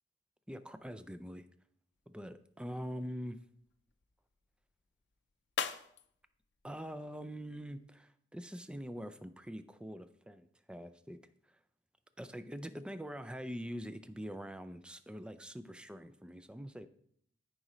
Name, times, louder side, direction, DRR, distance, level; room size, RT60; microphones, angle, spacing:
voice 1, 0.5-1.5 2.1-3.4 6.6-11.2 11.5-11.6 12.2-16.9, equal, 5° right, 11 dB, 0.4 m, -44 dB
sound 1, 1.9-7.9, left 7 dB, 65° left, 0.5 m, -46 dB
13.5 x 5.0 x 3.1 m, 0.68 s
head